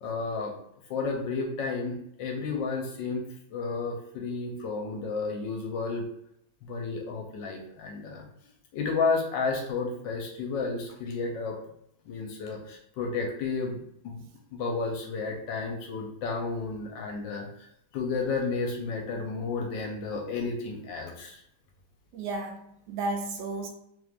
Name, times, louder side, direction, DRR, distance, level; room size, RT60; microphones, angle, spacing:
voice 1, 0.0-0.5 0.9-6.0 6.6-8.2 8.7-11.6 12.1-14.2 14.5-17.7 17.9-21.4, left 4 dB, 75° left, 1 dB, 1.2 m, -32 dB
voice 2, 22.1-23.7, right 2 dB, 75° right, 3 dB, 1.2 m, -33 dB
3.6 x 3.0 x 2.4 m, 0.75 s
omnidirectional pair, 2.2 m